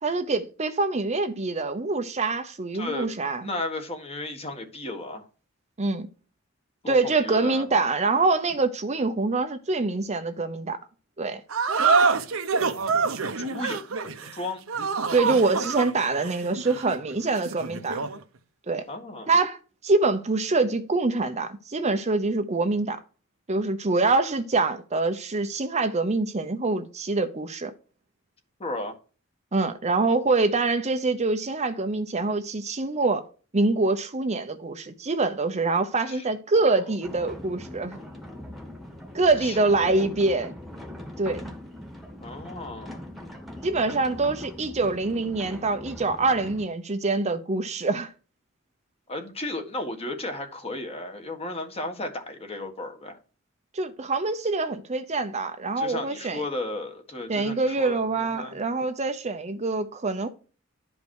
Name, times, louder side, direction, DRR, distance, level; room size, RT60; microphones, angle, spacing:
voice 1, 0.0-3.5 5.8-6.1 6.9-10.8 11.2-11.4 15.1-18.0 18.7-18.8 19.3-19.6 19.8-23.0 23.5-27.7 29.5-33.2 33.5-38.0 39.1-40.5 41.2-41.5 43.6-48.1 53.7-56.4 57.3-60.3, right 3 dB, 30° right, 0.7 m, -25 dB
voice 2, 2.7-3.1 3.4-5.3 6.8-7.7 13.4-14.7 18.9-19.3 28.6-29.0 36.1-36.2 36.5-36.8 39.4-39.6 39.8-40.1 42.2-43.0 49.1-53.2 55.8-58.6, left 2 dB, 30° left, 1.6 m, -34 dB
sound 1, 11.5-18.2, right 5 dB, 70° right, 0.9 m, -26 dB
sound 2, 37.0-46.6, left 1 dB, ahead, 1.5 m, -41 dB
11.5 x 5.3 x 4.7 m
head